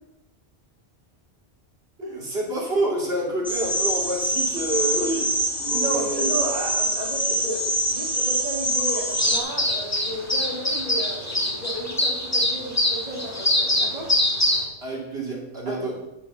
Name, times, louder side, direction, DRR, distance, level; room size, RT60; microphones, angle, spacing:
voice 1, 2.1-5.3 5.6-6.3 14.8-16.0, right 1 dB, 55° right, -2 dB, 3.1 m, -28 dB
sound 1, 3.4-9.4, right 1 dB, 5° right, 1.4 m, -25 dB
voice 2, 5.7-14.1 15.7-15.9, right 1 dB, 30° right, -3 dB, 2.2 m, -33 dB
sound 2, 9.2-14.6, left 1 dB, 15° left, 1.7 m, -24 dB
11.0 x 6.0 x 6.9 m, 0.93 s
omnidirectional pair, 1.2 m